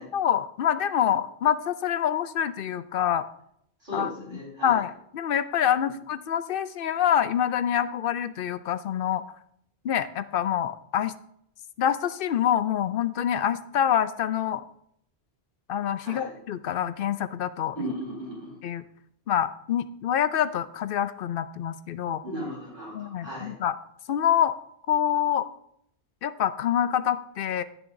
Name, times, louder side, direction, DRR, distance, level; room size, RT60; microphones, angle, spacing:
voice 1, 0.1-3.3 3.9-9.2 9.8-11.1 11.8-14.6 15.7-17.8 18.6-18.8 19.3-22.2 22.9-23.8 24.1-24.5 24.9-25.5 26.2-27.6, left 9 dB, 65° left, 14 dB, 0.7 m, -26 dB
voice 2, 3.8-4.8 5.8-5.9 16.0-16.3 17.7-18.6 22.2-23.5, equal, 55° right, -5 dB, 4.5 m, -36 dB
16.5 x 6.8 x 2.6 m, 0.71 s
omnidirectional pair, 1.1 m